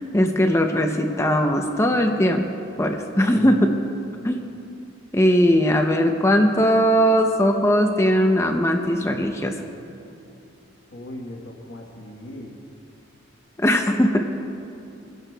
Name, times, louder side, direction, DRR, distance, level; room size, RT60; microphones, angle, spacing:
voice 1, 0.1-2.5 2.8-3.8 4.2-4.5 5.1-9.5 13.6-14.3, equal, 15° left, 4 dB, 0.5 m, -19 dB
voice 2, 3.3-3.6 10.9-12.6, left 1 dB, 70° left, -2 dB, 1.2 m, -38 dB
27.0 x 10.5 x 2.3 m, 2.7 s
head